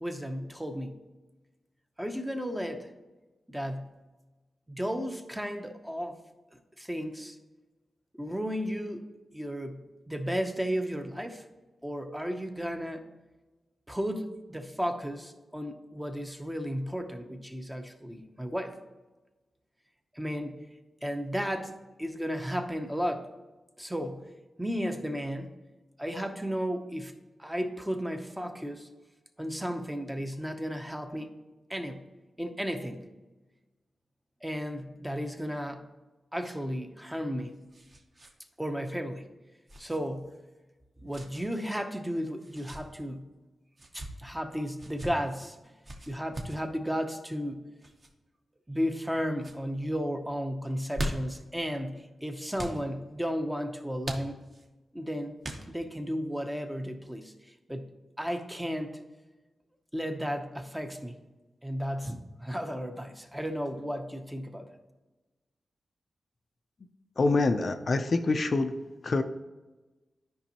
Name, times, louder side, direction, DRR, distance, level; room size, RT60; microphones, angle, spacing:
voice 1, 0.0-1.0 2.0-2.9 3.5-4.0 4.7-6.2 6.8-7.4 8.1-11.4 11.8-13.0 13.9-18.8 20.1-20.7 21.0-23.3 23.8-24.3 24.6-25.5 26.0-27.1 27.4-28.9 29.4-31.3 31.7-32.0 32.4-33.1 34.4-35.8 36.3-37.6 38.6-39.3 39.8-40.3 41.0-43.3 43.9-45.6 46.1-47.7 48.7-54.4 54.9-55.3 55.7-57.3 57.7-57.9 58.2-59.0 59.9-61.2 61.6-64.7, equal, 5° right, 6 dB, 0.6 m, -34 dB
sound 1, 37.2-38.3 38.6-38.8 39.7-40.0 41.1-41.5 42.4-42.8 43.7-44.1 44.8-45.1 45.8-46.6 47.8-48.1 48.7-49.1 49.4-49.6 50.7-51.4 52.5-52.8 54.0-54.7 55.4-56.0, right 1 dB, 30° right, 0.9 m, -39 dB
voice 2, 67.2-68.8 69.0-69.2, left 3 dB, 40° left, 7 dB, 0.4 m, -25 dB
12.0 x 5.2 x 2.9 m, 1.2 s
wide cardioid pair, 145°, 0 cm